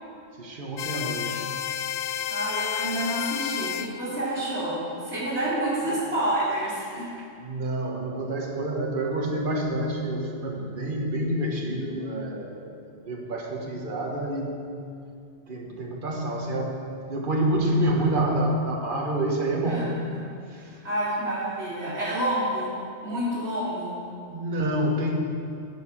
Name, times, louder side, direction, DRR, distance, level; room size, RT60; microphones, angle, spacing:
voice 1, 0.4-1.5 5.8-6.0 7.4-12.7 13.0-14.7 15.5-16.8 17.1-20.0 20.5-20.7 24.3-25.2, right 1 dB, 50° right, 0 dB, 1.4 m, -28 dB
sound 1, 0.8-3.9, left 10 dB, 55° left, 0.5 m, -30 dB
voice 2, 2.3-7.1 19.6-20.2 20.5-22.8 23.0-24.0, right 1 dB, 70° right, -11 dB, 3.5 m, -29 dB
13.0 x 5.0 x 7.2 m, 2.4 s
omnidirectional pair, 1.2 m